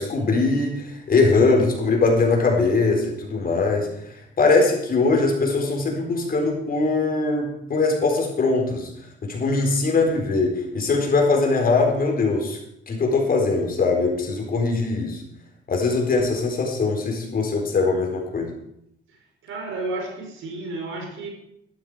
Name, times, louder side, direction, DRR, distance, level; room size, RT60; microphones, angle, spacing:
voice 1, 0.0-8.9 9.2-12.6 12.9-15.2 15.7-18.5, left 3 dB, 45° left, 1 dB, 4.3 m, -21 dB
voice 2, 19.4-21.3, right 2 dB, 80° right, 2 dB, 4.4 m, -31 dB
13.0 x 11.5 x 5.0 m, 0.77 s
cardioid pair, 90°, 20 cm